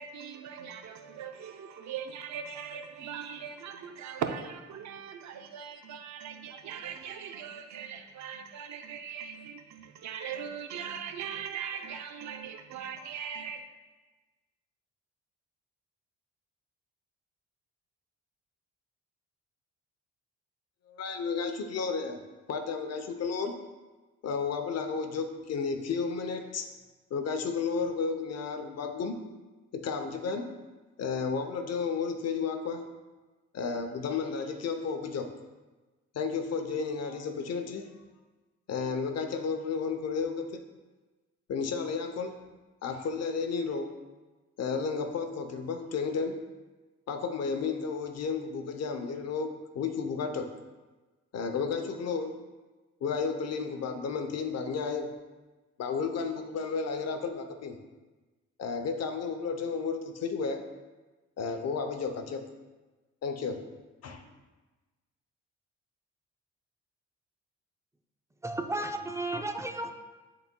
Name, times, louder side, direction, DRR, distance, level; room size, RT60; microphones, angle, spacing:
voice 1, 0.0-13.6, right 7 dB, 65° right, 7 dB, 0.6 m, -40 dB
voice 2, 20.9-22.2 22.5-23.6 24.2-26.7 27.1-29.2 29.7-30.5 31.0-32.8 33.5-35.3 36.1-37.8 38.7-40.6 41.5-42.4 42.8-44.0 44.6-46.4 47.1-50.5 51.3-52.4 53.0-55.1 55.8-57.7 58.6-60.6 61.4-62.4 63.2-63.6 64.0-64.2, left 5 dB, 55° left, 7 dB, 0.7 m, -32 dB
voice 3, 68.4-69.9, right 2 dB, 10° right, 5 dB, 0.5 m, -33 dB
10.5 x 4.1 x 2.2 m, 1.2 s
cardioid pair, 90°, 30 cm